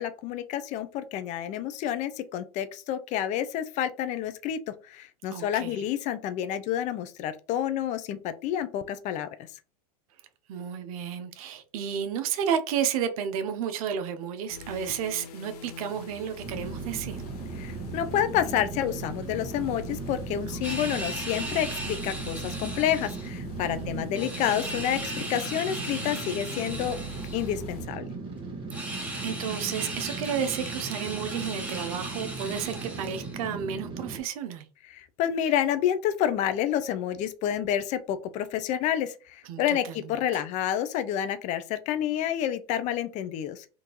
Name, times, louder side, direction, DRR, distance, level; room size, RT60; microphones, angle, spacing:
voice 1, 0.0-4.6 4.9-9.3 17.6-27.0 27.3-28.1 34.9-43.6, left 10 dB, 40° left, 0.4 m, -29 dB
voice 2, 5.3-5.8 10.5-17.2 20.5-21.0 23.7-24.1 28.8-34.7 39.4-40.4, right 8 dB, 65° right, 0.6 m, -32 dB
sound 1, 14.5-27.9, equal, 75° left, 0.6 m, -42 dB
sound 2, 16.4-34.2, right 4 dB, 25° right, 1.1 m, -38 dB
sound 3, 20.6-23.3 24.2-27.6 28.7-33.4, right 1 dB, 5° right, 0.9 m, -38 dB
3.6 x 2.5 x 2.9 m
hypercardioid pair, 115°, 20 cm